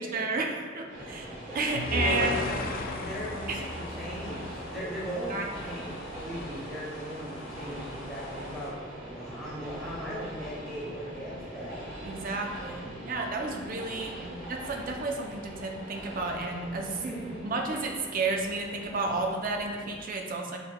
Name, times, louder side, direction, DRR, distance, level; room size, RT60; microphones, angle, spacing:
voice 1, 0.0-2.4 3.5-3.6 5.3-5.4 12.0-14.1 14.5-16.9 17.4-20.6, right 3 dB, 45° right, 2 dB, 0.5 m, -32 dB
Train, 0.9-20.0, right 1 dB, 70° right, 1.3 m, -42 dB
voice 2, 1.5-11.9 12.6-13.1 14.1-14.5 16.8-17.5, equal, 5° left, -9 dB, 1.4 m, -39 dB
sound 1, 1.7-4.9, left 2 dB, 45° left, 0.4 m, -34 dB
sound 2, 2.3-8.7, left 2 dB, 65° left, 1.0 m, -46 dB
5.8 x 4.1 x 2.2 m, 1.5 s
head